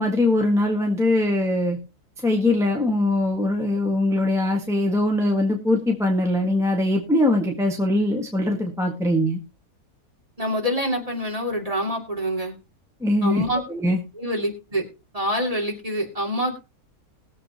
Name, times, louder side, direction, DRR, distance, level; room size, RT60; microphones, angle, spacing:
voice 1, 0.0-1.8 2.2-9.4 13.0-13.4 13.7-14.0, left 1 dB, ahead, 0 dB, 1.6 m, -21 dB
voice 2, 10.4-12.5 13.2-13.6 14.2-14.8 15.1-16.6, equal, 25° right, 1 dB, 2.7 m, -26 dB
20.5 x 7.7 x 2.9 m, 0.27 s
omnidirectional pair, 1.5 m